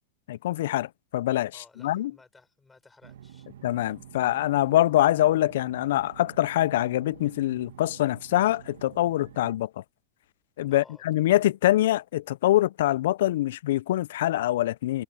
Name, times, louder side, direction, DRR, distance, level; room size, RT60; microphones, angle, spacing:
voice 1, 0.3-1.5 1.8-2.1 3.6-9.7 10.6-15.0, left 14 dB, 70° left, 0.3 m, -24 dB
voice 2, 1.5-3.5 10.7-11.0, left 3 dB, 10° left, 6.2 m, -56 dB
sound 1, 3.0-9.5, right 10 dB, 85° right, 1.8 m, -49 dB
supercardioid pair, 155°, 0 cm